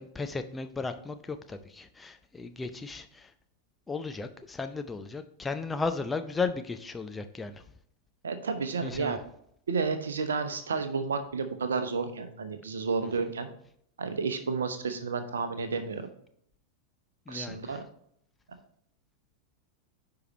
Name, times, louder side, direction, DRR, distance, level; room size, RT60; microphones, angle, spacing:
voice 1, 0.0-3.3 3.9-7.6 8.8-9.2 17.3-17.8, left 4 dB, 10° left, 8 dB, 0.5 m, -35 dB
voice 2, 8.2-9.2 9.7-13.5 14.0-16.1 17.3-17.8, right 5 dB, 70° right, 8 dB, 0.9 m, -31 dB
9.8 x 4.8 x 3.0 m, 0.68 s
figure-of-eight pair, 90°, 0 cm